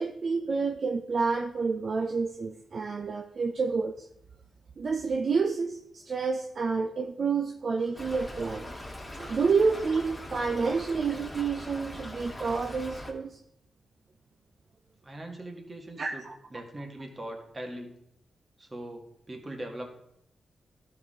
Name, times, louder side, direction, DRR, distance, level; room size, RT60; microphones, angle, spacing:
voice 1, 0.0-4.1 4.8-8.7 9.1-13.4 16.0-16.3, right 4 dB, 60° right, 4 dB, 0.6 m, -29 dB
Stream / Trickle dribble, 7.9-13.1, left 1 dB, 15° left, 1.9 m, -41 dB
voice 2, 15.0-16.3 16.5-18.0 18.6-19.9, right 1 dB, 35° right, 2 dB, 2.0 m, -41 dB
12.5 x 4.9 x 3.7 m, 0.79 s
cardioid pair, 50°, 0 cm